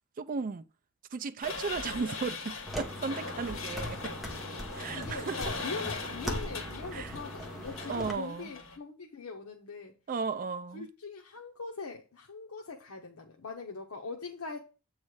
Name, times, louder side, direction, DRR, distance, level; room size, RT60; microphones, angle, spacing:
voice 1, 0.2-0.6 1.1-4.1 4.7-5.4 6.9-7.1 7.9-8.5 10.1-10.9, right 5 dB, 40° right, 0.4 m, -35 dB
sound 1, 1.4-8.8, left 3 dB, 60° left, 1.8 m, -40 dB
sound 2, 2.7-8.1, left 1 dB, ahead, 1.1 m, -40 dB
voice 2, 4.9-9.9 10.7-14.6, left 4 dB, 75° left, 0.9 m, -42 dB
8.2 x 3.2 x 6.2 m
head